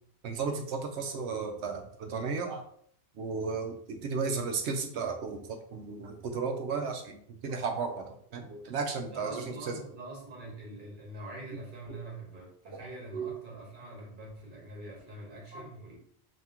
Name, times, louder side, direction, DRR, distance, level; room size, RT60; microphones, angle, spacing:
voice 1, 0.2-2.6 3.2-7.2 7.4-9.7 11.9-12.0 12.7-12.9 13.1-13.3 15.5-15.7, right 5 dB, 80° right, 4 dB, 0.9 m, -34 dB
voice 2, 9.0-16.0, right 1 dB, 50° right, -3 dB, 1.4 m, -44 dB
2.9 x 2.8 x 3.5 m, 0.62 s
omnidirectional pair, 1.1 m